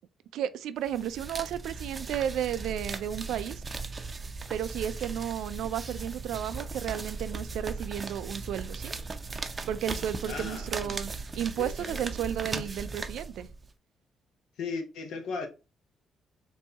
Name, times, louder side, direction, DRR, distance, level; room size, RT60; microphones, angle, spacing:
voice 1, 0.3-3.6 4.5-8.9 9.7-13.5, right 10 dB, 85° right, 0.4 m, -33 dB
sound 1, 0.9-13.7, right 4 dB, 30° right, 0.5 m, -38 dB
voice 2, 10.2-11.0 11.6-12.1 12.5-12.7 14.6-15.5, left 4 dB, 85° left, 0.9 m, -37 dB
4.1 x 2.7 x 3.4 m
cardioid pair, 90°, 0 cm